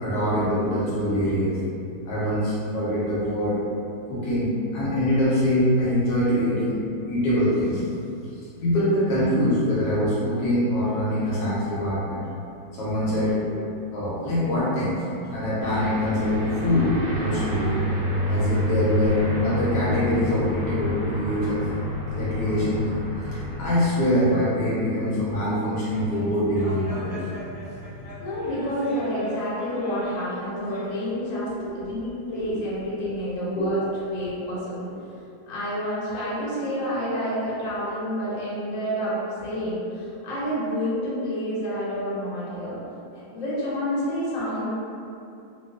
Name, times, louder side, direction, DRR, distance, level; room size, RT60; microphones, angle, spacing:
voice 1, 0.0-1.6 2.1-3.6 4.1-6.8 7.1-7.8 8.4-12.2 12.7-13.6 13.9-15.0 15.3-17.7 18.3-21.6 22.2-22.8 23.3-27.4 31.6-31.9 32.3-32.6 33.5-33.8 34.2-34.3, equal, 80° left, -8 dB, 1.1 m, -24 dB
Aircraft, 15.6-23.7, left 1 dB, 70° right, 0.3 m, -28 dB
sound 1, 25.9-30.8, equal, 35° left, 1.0 m, -39 dB
voice 2, 28.2-34.9 35.5-42.8 43.1-44.7, equal, 55° left, -9 dB, 1.1 m, -29 dB
2.8 x 2.4 x 2.4 m, 2.6 s
omnidirectional pair, 1.8 m